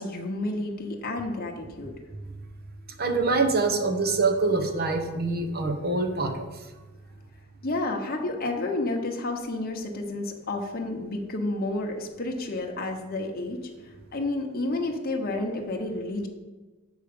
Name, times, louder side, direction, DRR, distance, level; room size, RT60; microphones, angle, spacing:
voice 1, 0.0-1.9 7.6-16.3, left 2 dB, 45° left, 1 dB, 0.9 m, -30 dB
voice 2, 3.0-6.5, right 3 dB, 45° right, 6 dB, 0.9 m, -25 dB
6.5 x 4.9 x 6.8 m, 1.2 s
head